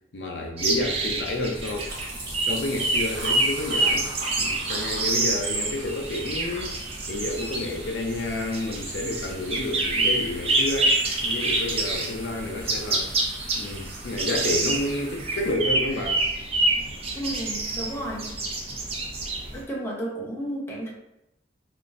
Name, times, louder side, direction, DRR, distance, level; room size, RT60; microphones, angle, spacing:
voice 1, 0.1-1.9 2.4-4.1 4.4-6.7 7.1-13.1 13.6-16.2, left 2 dB, 70° left, 2 dB, 0.5 m, -30 dB
sound 1, 0.6-19.6, right 2 dB, 35° right, 0.6 m, -27 dB
sound 2, 1.3-15.5, right 2 dB, 60° right, 1.2 m, -41 dB
voice 2, 17.2-18.2 19.5-20.9, right 1 dB, 15° left, -4 dB, 0.8 m, -32 dB
3.5 x 2.5 x 2.5 m, 0.85 s
head